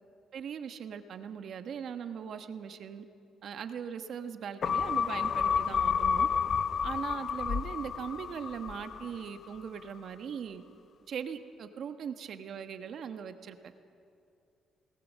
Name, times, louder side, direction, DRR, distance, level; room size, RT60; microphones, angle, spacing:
voice 1, 0.3-3.0 3.4-6.3 6.8-10.6 11.1-13.6, right 7 dB, 65° right, 8 dB, 1.3 m, -40 dB
sound 1, 4.6-9.3 9.7-9.8, left 6 dB, 55° left, 0.5 m, -30 dB
20.5 x 19.0 x 7.5 m, 2.6 s
cardioid pair, 90°, 0 cm